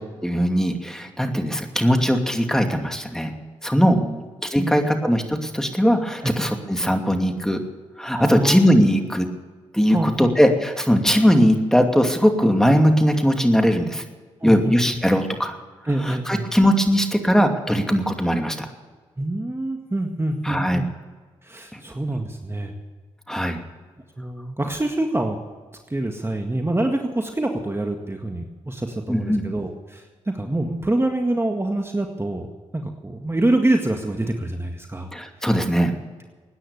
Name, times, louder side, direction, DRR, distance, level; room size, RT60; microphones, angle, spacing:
voice 1, 0.2-3.3 3.6-4.0 4.5-7.6 8.0-9.3 9.7-14.0 14.4-15.6 16.1-18.7 20.4-20.8 23.3-23.6 29.1-29.4 35.1-35.9, equal, 5° left, 4 dB, 2.6 m, -19 dB
voice 2, 3.8-4.2 4.6-5.0 6.2-6.3 8.2-8.6 9.9-10.3 11.1-11.2 14.4-15.0 15.9-16.5 19.2-20.9 21.4-22.8 23.4-23.5 24.2-25.4 25.9-32.5 32.7-35.1, right 1 dB, 20° right, 3 dB, 1.9 m, -26 dB
17.5 x 9.9 x 7.1 m, 1.4 s
supercardioid pair, 45°, 14 cm